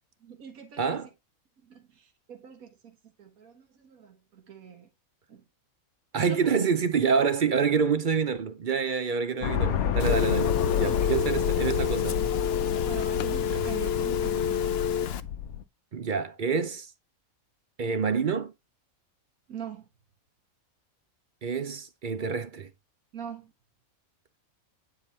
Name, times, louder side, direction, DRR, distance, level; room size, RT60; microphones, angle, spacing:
voice 1, 0.2-1.0 1.6-1.8 2.3-4.9 5.3-5.4 6.2-6.3 10.9-11.2 12.8-14.8 19.5-19.9 23.1-23.5, right 8 dB, 75° right, 1.9 m, -43 dB
voice 2, 0.8-1.1 6.1-12.2 13.4-13.7 15.9-16.9 17.8-18.5 21.4-22.7, right 6 dB, 45° right, 0.7 m, -27 dB
sound 1, 9.4-15.6, left 8 dB, 85° left, 1.2 m, -29 dB
Telephone, 10.0-15.2, left 8 dB, 60° left, 0.7 m, -28 dB
9.2 x 4.9 x 4.0 m
omnidirectional pair, 1.5 m